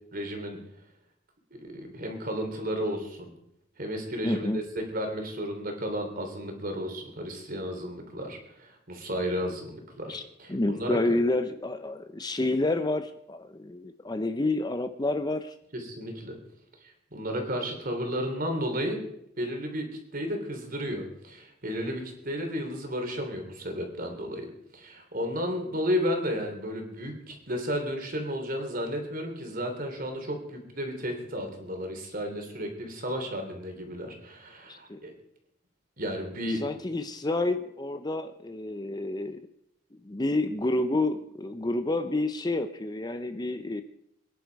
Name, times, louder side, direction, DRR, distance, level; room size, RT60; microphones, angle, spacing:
voice 1, 0.1-0.6 1.6-3.3 3.8-9.7 10.0-11.1 15.7-16.4 17.1-19.0 19.4-24.5 24.7-35.1 36.0-36.7, equal, 45° right, 4 dB, 3.3 m, -33 dB
voice 2, 4.2-4.6 10.1-10.2 10.5-15.5 34.7-35.0 36.6-39.4 40.0-43.8, left 2 dB, 20° left, 9 dB, 0.6 m, -29 dB
23.5 x 10.5 x 4.7 m, 0.78 s
head